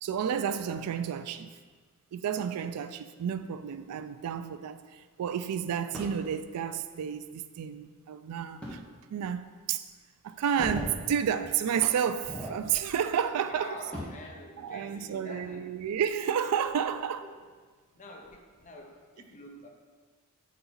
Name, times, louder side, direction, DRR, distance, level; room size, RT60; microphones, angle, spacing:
voice 1, 0.0-1.5 2.1-8.8 9.1-9.8 10.2-13.8 14.6-17.2, right 8 dB, 90° right, 0.3 m, -31 dB
sound 1, 5.9-6.2 8.6-8.8 9.4-9.5 10.3-11.0 11.4-11.6 12.1-13.0 13.4-14.3 15.8-16.9 17.4-17.5 18.2-18.6, equal, 5° left, 1.1 m, -40 dB
voice 2, 13.5-15.7 17.2-17.4 18.0-19.7, left 1 dB, 35° left, 0.6 m, -46 dB
5.8 x 4.2 x 3.9 m
head